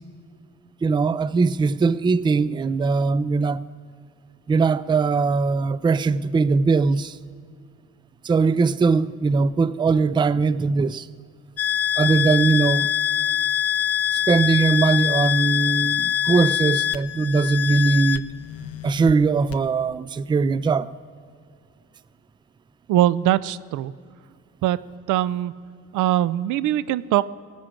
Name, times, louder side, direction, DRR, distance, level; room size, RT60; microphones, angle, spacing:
voice 1, 0.8-3.6 4.5-7.2 8.2-11.1 12.0-12.9 14.3-18.3 18.8-20.9, right 4 dB, 15° right, 0.3 m, -20 dB
sound 1, 11.6-19.1 19.5-19.6, left 10 dB, 50° left, 0.5 m, -24 dB
voice 2, 22.9-23.9 24.6-24.8 25.1-25.5 25.9-27.3, right 13 dB, 85° right, 0.5 m, -21 dB
17.0 x 9.0 x 7.3 m
cardioid pair, 90°, 30 cm